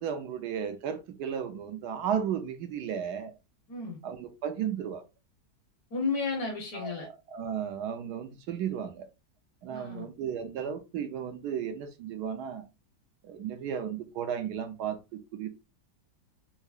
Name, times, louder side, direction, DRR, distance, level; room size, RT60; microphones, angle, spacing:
voice 1, 0.0-3.3 4.0-5.0 6.7-9.0 9.6-12.7 13.2-15.0 15.3-15.5, right 8 dB, 75° right, 1.1 m, -34 dB
voice 2, 3.7-4.0 5.9-7.1 9.7-10.1, left 4 dB, 65° left, 1.4 m, -32 dB
5.5 x 2.0 x 2.3 m
omnidirectional pair, 1.8 m